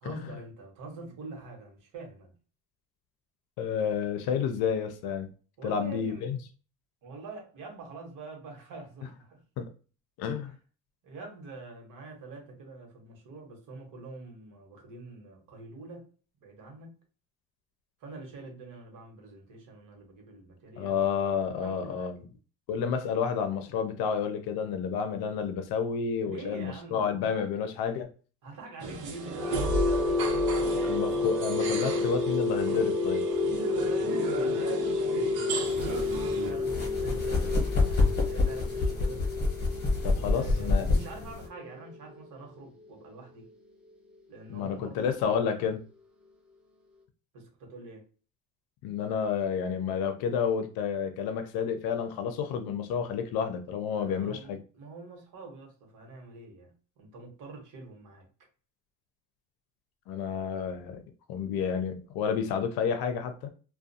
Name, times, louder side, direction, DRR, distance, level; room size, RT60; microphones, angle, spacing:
voice 1, 0.0-2.3 5.6-6.3 7.0-9.4 11.0-16.1 16.4-17.0 18.0-21.0 21.6-22.1 26.2-27.5 28.4-30.1 33.7-35.2 36.0-39.2 40.1-43.5 44.3-45.7 47.3-48.0 53.9-58.3, right 3 dB, 60° right, 1.1 m, -45 dB
voice 2, 3.6-5.3 5.6-6.4 9.6-9.7 10.2-10.5 20.8-22.2 22.7-28.1 30.8-33.2 40.0-40.8 44.5-45.8 48.8-54.6 60.1-61.0 61.3-63.5, left 7 dB, 80° left, 0.5 m, -30 dB
sound 1, 28.8-36.5, right 4 dB, 90° right, 0.9 m, -35 dB
sound 2, 29.2-43.1, left 3 dB, 5° right, 0.4 m, -30 dB
sound 3, 35.6-41.5, left 3 dB, 30° left, 0.8 m, -28 dB
2.4 x 2.2 x 2.6 m
cardioid pair, 150°, 36 cm